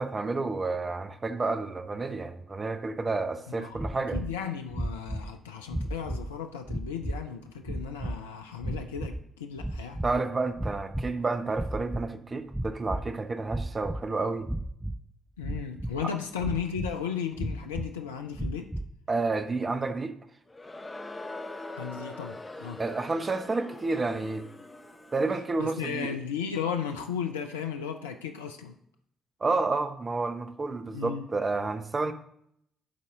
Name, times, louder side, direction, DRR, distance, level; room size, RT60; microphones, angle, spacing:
voice 1, 0.0-4.2 10.0-14.5 16.0-16.1 19.1-20.1 22.8-24.5 25.1-26.1 29.4-32.1, right 3 dB, 35° right, 8 dB, 0.9 m, -30 dB
voice 2, 3.6-10.0 15.4-18.7 21.8-22.8 25.6-28.7 30.9-31.3, left 7 dB, 80° left, 5 dB, 0.4 m, -35 dB
sound 1, 3.7-4.4 4.7-5.3 5.7-6.3 6.7-7.3 7.6-8.2 8.6-9.3 9.6-10.2 10.5-11.2 11.5-12.1 12.5-13.1 13.5-14.0 14.4-15.0 15.4-16.0 16.4-17.0 17.4-17.9 18.3-18.9, right 1 dB, 10° right, 0.5 m, -34 dB
Crowd, 20.5-25.5, left 2 dB, 20° left, 0.9 m, -42 dB
11.5 x 4.2 x 3.7 m, 0.71 s
figure-of-eight pair, 45°, 0 cm